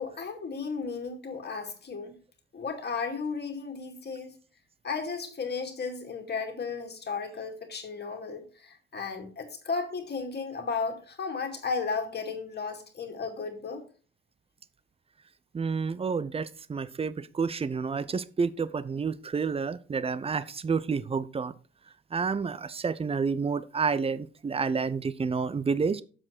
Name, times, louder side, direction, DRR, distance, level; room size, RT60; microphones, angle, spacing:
voice 1, 0.0-2.1 2.5-4.3 4.8-13.8, left 5 dB, 30° left, 2.4 m, -34 dB
voice 2, 15.5-21.5 22.1-26.0, right 5 dB, 15° right, 0.6 m, -29 dB
8.8 x 7.6 x 4.5 m
figure-of-eight pair, 50°, 34 cm